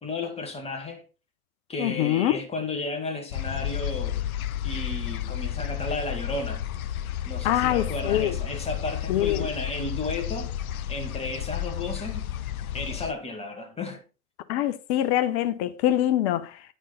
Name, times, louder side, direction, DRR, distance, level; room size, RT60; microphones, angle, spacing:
voice 1, 0.0-1.0 1.7-4.3 4.6-6.7 7.2-10.5 10.9-12.3 12.7-14.0, left 3 dB, 15° left, 2.1 m, -33 dB
voice 2, 1.8-2.4 7.4-8.3 9.1-9.5 14.5-16.6, left 12 dB, 50° left, 0.9 m, -24 dB
sound 1, 3.3-13.1, left 11 dB, 75° left, 0.6 m, -32 dB
9.1 x 6.4 x 3.8 m
hypercardioid pair, 100°, 43 cm